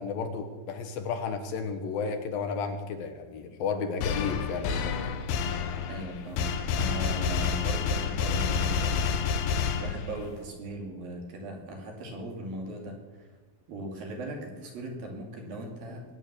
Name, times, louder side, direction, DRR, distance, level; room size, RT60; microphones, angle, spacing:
voice 1, 0.0-5.1, left 5 dB, 70° left, 6 dB, 3.0 m, -33 dB
sound 1, 4.0-10.3, left 6 dB, 90° left, 3.1 m, -29 dB
voice 2, 5.9-9.0 9.8-13.3 13.7-16.0, right 1 dB, 65° right, 1 dB, 4.2 m, -39 dB
22.0 x 9.4 x 6.8 m, 1.3 s
omnidirectional pair, 4.4 m